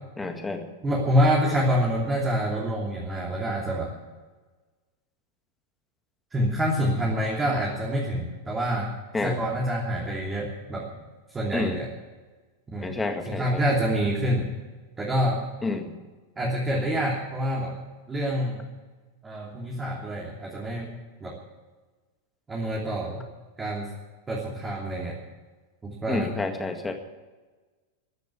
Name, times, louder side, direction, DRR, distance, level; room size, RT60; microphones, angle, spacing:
voice 1, 0.2-0.7 9.1-9.4 11.5-11.8 12.8-13.6 15.6-15.9 26.1-26.9, left 3 dB, 10° left, 5 dB, 2.0 m, -29 dB
voice 2, 0.8-3.9 6.3-8.9 9.2-10.9 11.3-11.9 12.7-13.0 13.3-14.5 15.0-15.4 16.4-17.7 18.1-18.6 19.2-20.9 21.2-21.4 22.5-23.2 23.6-23.9 24.3-25.2 25.8-26.3, equal, 15° right, -3 dB, 3.1 m, -26 dB
15.0 x 10.5 x 8.4 m, 1.3 s
figure-of-eight pair, 90°, 0 cm